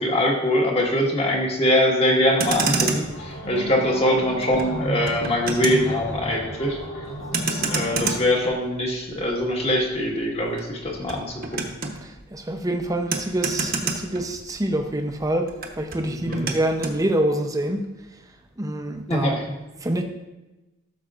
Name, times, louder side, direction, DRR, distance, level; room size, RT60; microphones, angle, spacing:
voice 1, 0.0-6.8 7.5-11.6 16.1-16.5 19.1-19.4, left 1 dB, 30° left, 1.4 m, -23 dB
Motor vehicle (road), 2.2-14.8 15.1-17.0, right 4 dB, 45° right, 1.0 m, -30 dB
sound 1, 3.1-8.2, equal, 70° left, 1.6 m, -33 dB
voice 2, 12.0-18.0 18.6-19.4 19.8-20.0, right 1 dB, 15° right, 0.6 m, -26 dB
13.5 x 6.5 x 2.5 m
head